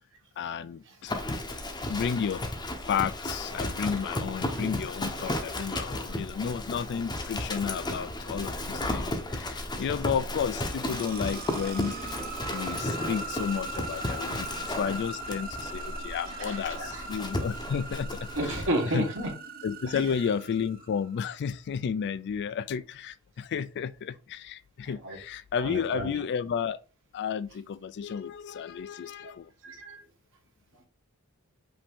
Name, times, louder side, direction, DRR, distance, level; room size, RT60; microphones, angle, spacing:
voice 1, 0.4-1.1 1.9-2.5 2.9-11.9 12.5-18.6 18.9-19.1 19.6-26.8 27.1-29.5, left 7 dB, 55° left, 0.3 m, -32 dB
Livestock farm animals working animals, 1.1-18.7, left 1 dB, 20° left, 0.7 m, -34 dB
sound 1, 10.5-21.2, right 3 dB, 45° right, 0.6 m, -40 dB
voice 2, 16.3-17.1 18.3-19.3 24.8-25.2 25.6-26.2 29.6-30.0, right 1 dB, 65° right, 1.4 m, -32 dB
5.3 x 2.7 x 3.5 m
head